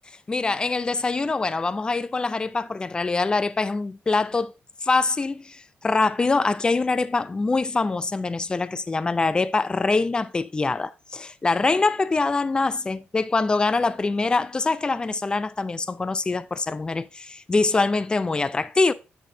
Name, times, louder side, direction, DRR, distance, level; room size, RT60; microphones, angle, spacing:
voice 1, 0.3-4.5 4.8-18.9, left 3 dB, 20° left, 0.4 m, -24 dB
8.4 x 6.3 x 2.7 m
cardioid pair, 125°, 4 cm